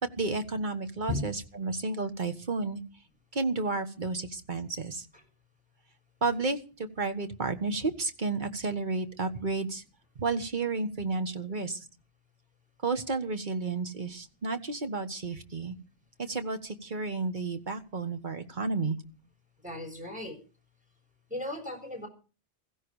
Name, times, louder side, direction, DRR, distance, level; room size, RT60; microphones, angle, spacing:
voice 1, 0.0-2.8 3.3-5.1 6.2-9.8 10.1-11.8 12.8-15.7 16.2-19.0, right 3 dB, 40° right, 8 dB, 1.7 m, -32 dB
voice 2, 19.6-20.4 21.3-22.1, left 1 dB, 5° right, 4 dB, 6.4 m, -35 dB
16.5 x 15.5 x 4.8 m, 0.35 s
omnidirectional pair, 1.2 m